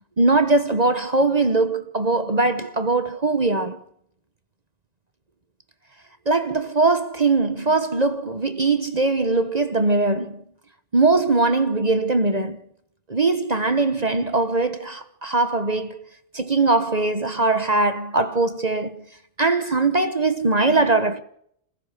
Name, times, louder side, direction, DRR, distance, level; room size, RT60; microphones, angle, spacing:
voice 1, 0.2-3.8 6.3-10.4 10.9-12.6 13.1-16.1 16.3-19.0 19.4-21.2, right 3 dB, 40° right, 1.3 m, -21 dB
27.0 x 16.0 x 6.8 m
omnidirectional pair, 1.1 m